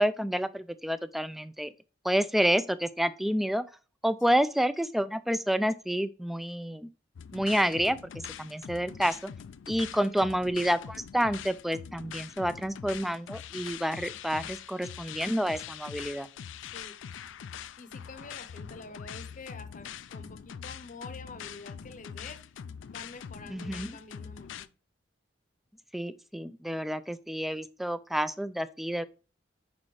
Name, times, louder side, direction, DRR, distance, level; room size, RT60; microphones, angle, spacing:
voice 1, 0.0-1.7 2.0-3.7 4.0-6.9 7.3-9.3 9.7-16.3 23.5-24.0 25.9-29.1, equal, ahead, 0.3 m, -29 dB
sound 1, 7.2-24.7, left 8 dB, 85° left, 0.4 m, -43 dB
voice 2, 17.8-22.4 22.9-24.7, left 3 dB, 45° left, 0.8 m, -47 dB
6.3 x 4.3 x 4.8 m
head